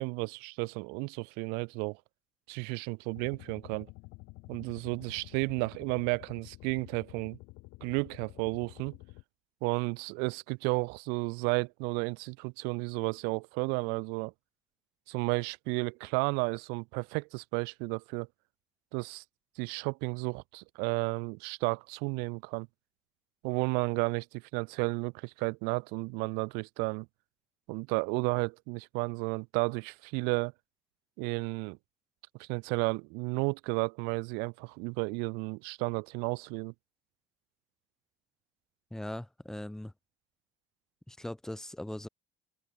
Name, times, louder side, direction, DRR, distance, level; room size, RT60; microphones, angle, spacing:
voice 1, 0.0-2.0 2.5-3.9 4.5-7.4 7.8-9.0 9.6-14.3 15.1-18.3 18.9-19.2 19.6-22.7 23.4-27.1 27.7-30.5 31.2-31.8 32.4-36.7, right 33 dB, 90° right, 2.2 m, -32 dB
sound 1, 3.1-9.2, left 26 dB, 75° left, 3.7 m, -50 dB
voice 2, 38.9-39.9 41.1-42.1, left 1 dB, 5° left, 3.1 m, -40 dB
open air
cardioid pair, 175°, 16 cm